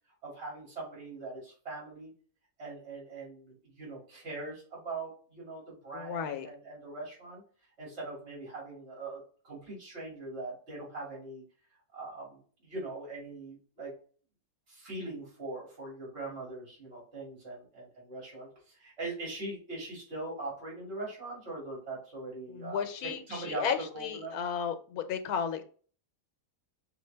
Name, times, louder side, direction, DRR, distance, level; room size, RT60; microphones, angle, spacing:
voice 1, 0.2-2.1 2.6-7.4 7.8-11.4 11.9-13.9 14.7-23.6 23.9-24.4, right 2 dB, 45° right, -4 dB, 2.6 m, -41 dB
voice 2, 5.9-6.5 22.5-25.6, left 7 dB, 85° left, 8 dB, 1.2 m, -34 dB
6.1 x 2.5 x 3.2 m, 0.42 s
omnidirectional pair, 1.5 m